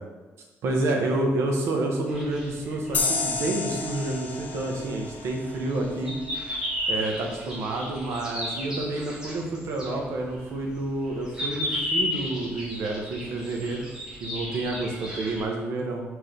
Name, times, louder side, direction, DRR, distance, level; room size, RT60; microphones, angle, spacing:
voice 1, 0.6-6.2 6.9-13.8 14.2-16.0, right 2 dB, 70° right, 1 dB, 1.2 m, -29 dB
sound 1, 2.1-15.4, left 1 dB, 15° right, 1.7 m, -34 dB
sound 2, 2.9-6.3, left 3 dB, 30° left, 0.9 m, -31 dB
4.9 x 4.8 x 5.2 m, 1.2 s
cardioid pair, 170°, 5 cm